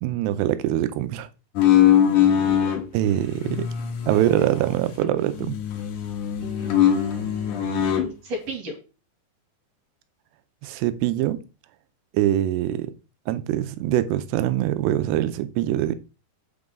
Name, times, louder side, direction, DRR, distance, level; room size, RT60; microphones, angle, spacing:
voice 1, 0.0-1.3 2.9-3.7 4.1-5.6 10.6-11.4 12.1-12.9 13.3-15.9, right 12 dB, 80° right, 2.8 m, -23 dB
sound 1, 1.6-2.8 3.3-5.1 5.4-8.1, left 10 dB, 65° left, 2.2 m, -21 dB
voice 2, 1.7-2.8 6.4-8.7, right 1 dB, 45° right, 2.7 m, -37 dB
8.4 x 7.9 x 3.6 m
omnidirectional pair, 4.9 m